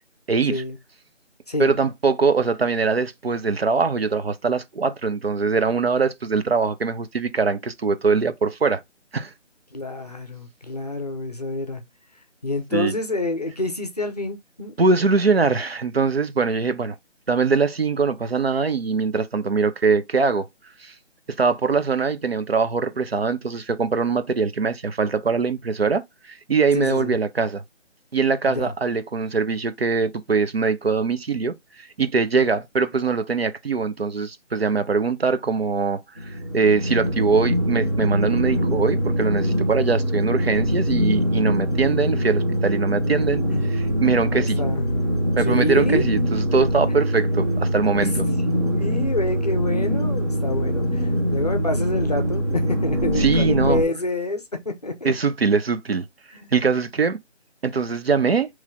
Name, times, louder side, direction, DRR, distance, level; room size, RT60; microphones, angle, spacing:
voice 1, 0.3-0.6 1.6-8.8 9.1-9.3 12.7-12.9 14.8-16.9 17.3-20.5 20.8-20.9 21.4-27.6 28.1-43.4 44.0-44.6 45.4-48.2 53.2-53.8 55.0-56.0 56.5-57.2 57.6-58.5, right 4 dB, 55° right, 0.7 m, -22 dB
voice 2, 9.7-11.8 12.4-14.7 26.7-27.1 28.5-28.7 43.5-43.7 44.0-44.9 45.4-46.0 48.4-55.1 56.4-56.6, left 2 dB, 35° left, 0.7 m, -28 dB
sound 1, 36.2-53.8, equal, 20° right, 0.9 m, -23 dB
4.2 x 3.2 x 3.6 m
figure-of-eight pair, 170°, 36 cm